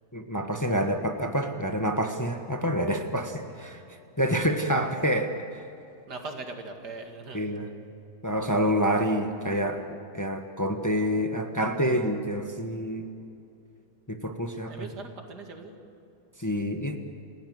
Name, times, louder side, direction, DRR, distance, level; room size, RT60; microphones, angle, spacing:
voice 1, 0.1-3.8 4.2-5.3 7.3-7.7 8.2-13.0 14.1-14.9 16.4-17.0, equal, 10° left, 4 dB, 1.2 m, -27 dB
voice 2, 6.1-7.6 14.7-15.7, right 3 dB, 85° right, 4 dB, 2.8 m, -40 dB
29.5 x 16.5 x 7.9 m, 2.6 s
omnidirectional pair, 1.7 m